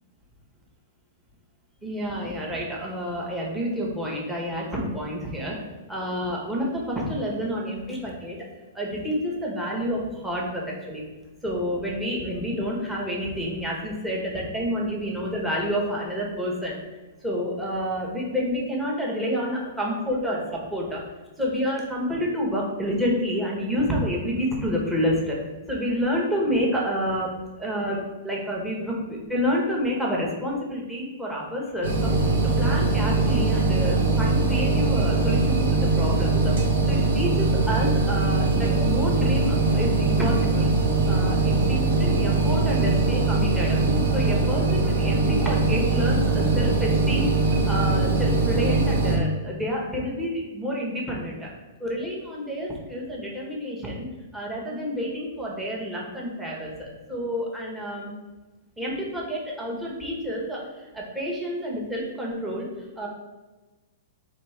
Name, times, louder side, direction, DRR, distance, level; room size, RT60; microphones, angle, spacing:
voice 1, 1.8-5.6 5.9-8.4 8.7-11.0 11.4-16.8 17.2-21.0 21.4-25.4 25.7-27.3 27.6-32.3 32.6-36.5 36.9-40.7 41.1-43.8 44.1-51.5 51.8-54.1 54.3-58.1 58.8-62.7 63.0-63.1, equal, 5° right, -3 dB, 1.2 m, -29 dB
sound 1, 31.8-49.2, right 3 dB, 80° right, 1.5 m, -22 dB
4.3 x 3.5 x 3.3 m, 1.2 s
hypercardioid pair, 140°, 0 cm